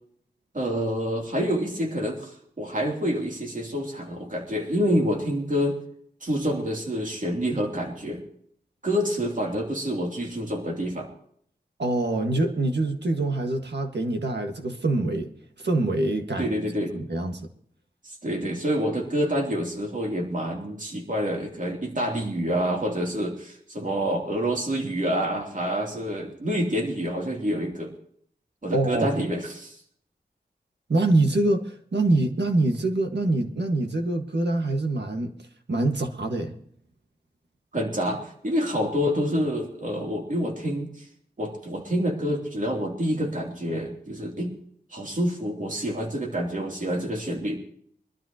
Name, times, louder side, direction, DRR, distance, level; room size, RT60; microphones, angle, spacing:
voice 1, 0.5-5.8 6.2-8.2 8.8-11.1 16.4-17.0 18.0-27.9 28.6-29.8 37.7-40.9 41.4-44.5 44.9-47.6, equal, 50° right, 3.0 m, -27 dB
voice 2, 11.8-15.3 15.6-16.5 16.9-17.4 28.7-29.1 30.9-35.3 35.7-36.5, right 2 dB, 75° right, 1.7 m, -24 dB
23.5 x 12.5 x 3.0 m
wide cardioid pair, 65°, 18 cm